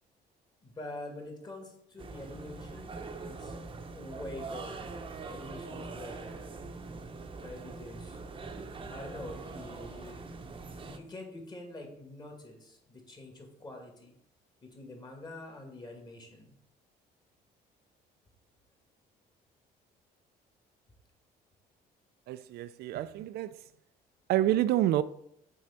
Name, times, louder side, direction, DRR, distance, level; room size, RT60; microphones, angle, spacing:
voice 1, 0.6-3.5 3.9-6.6 7.4-8.2 8.9-14.2 14.6-16.6, left 2 dB, 25° left, 2.0 m, -46 dB
sound 1, 2.0-11.0, right 3 dB, 30° right, 0.8 m, -43 dB
voice 2, 22.3-23.6 24.3-25.0, right 13 dB, 70° right, 0.4 m, -28 dB
6.2 x 3.9 x 5.7 m
cardioid pair, 110°, 17 cm